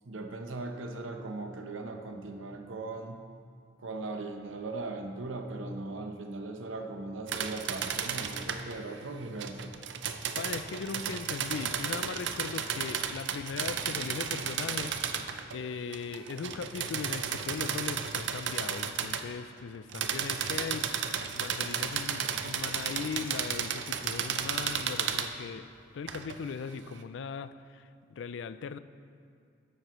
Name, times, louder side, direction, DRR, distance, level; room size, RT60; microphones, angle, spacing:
voice 1, 0.0-3.2 3.8-9.7, right 2 dB, 90° right, 5 dB, 0.8 m, -39 dB
sound 1, 7.3-8.8 9.4-15.6 15.9-19.3 19.9-25.3 26.1-26.4, right 7 dB, 65° right, 0.5 m, -33 dB
voice 2, 10.4-14.9 15.5-25.7 25.9-28.8, left 5 dB, 70° left, 13 dB, 0.4 m, -39 dB
12.0 x 9.1 x 3.1 m, 2.3 s
head